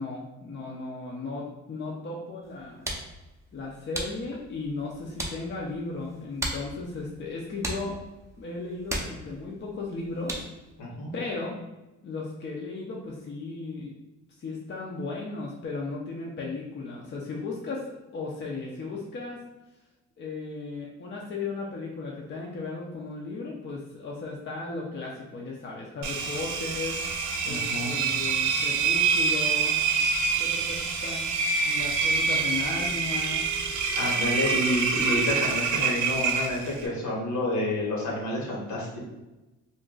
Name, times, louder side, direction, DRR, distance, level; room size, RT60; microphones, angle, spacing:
voice 1, 0.0-2.9 3.5-8.0 8.4-10.4 11.1-11.6 12.0-14.0 14.4-19.4 20.2-27.0 27.4-29.8 30.4-31.3 31.6-33.4, left 3 dB, 40° left, -2 dB, 0.6 m, -35 dB
sound 1, 2.4-10.7, right 1 dB, 10° right, 0.6 m, -38 dB
voice 2, 10.8-11.1 27.5-27.9 34.0-39.0, left 1 dB, 70° left, -4 dB, 1.3 m, -29 dB
Engine, 26.0-36.9, right 5 dB, 75° right, 0.5 m, -26 dB
2.5 x 2.2 x 3.7 m, 1.0 s
cardioid pair, 90°, 30 cm